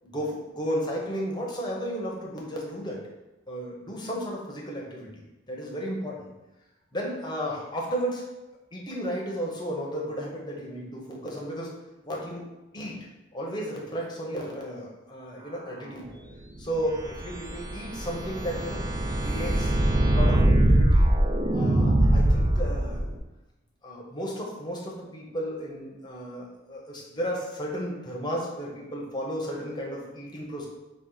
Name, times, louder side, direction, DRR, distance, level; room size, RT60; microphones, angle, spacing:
voice 1, 0.0-3.0 3.5-6.3 6.9-8.3 8.7-11.7 12.0-12.5 12.7-13.0 13.3-16.1 16.6-18.8 19.2-21.0 21.5-23.1 23.8-30.7, equal, 20° left, -2 dB, 0.7 m, -33 dB
sound 1, 16.8-23.2, right 1 dB, 20° right, 0.3 m, -22 dB
4.4 x 2.4 x 3.8 m, 1.0 s
head